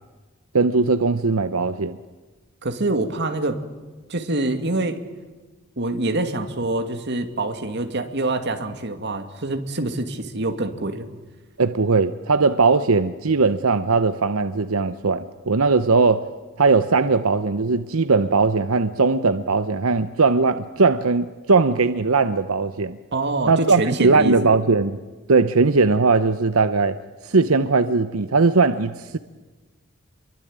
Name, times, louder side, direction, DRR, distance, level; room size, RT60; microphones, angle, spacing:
voice 1, 0.5-2.0 11.6-16.2 16.6-23.0 23.5-25.0 25.3-27.0 27.2-29.2, right 4 dB, 85° right, 11 dB, 0.9 m, -19 dB
voice 2, 2.6-3.6 4.1-5.0 5.8-11.1 23.1-24.5, right 2 dB, 55° right, 6 dB, 2.5 m, -25 dB
28.0 x 23.0 x 8.9 m, 1.2 s
head